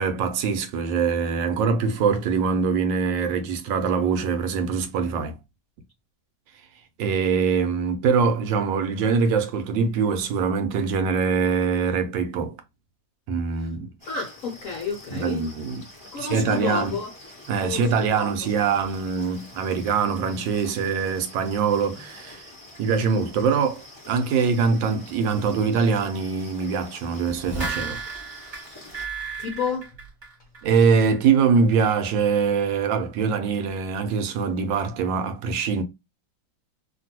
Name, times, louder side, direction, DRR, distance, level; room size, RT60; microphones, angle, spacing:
voice 1, 0.0-5.4 7.0-12.6 13.3-13.9 15.1-15.8 16.2-16.9 17.5-22.5 22.8-28.0 30.6-35.8, right 5 dB, 75° right, 1.2 m, -23 dB
sound 1, 14.0-29.0, left 2 dB, 15° left, 1.2 m, -46 dB
voice 2, 14.1-15.4 16.1-17.1 17.6-17.8 18.1-18.3 29.4-29.9, left 5 dB, 65° left, 0.8 m, -29 dB
sound 2, 27.2-30.8 31.1-31.2, right 4 dB, 30° right, 1.0 m, -34 dB
2.9 x 2.6 x 2.7 m
omnidirectional pair, 2.2 m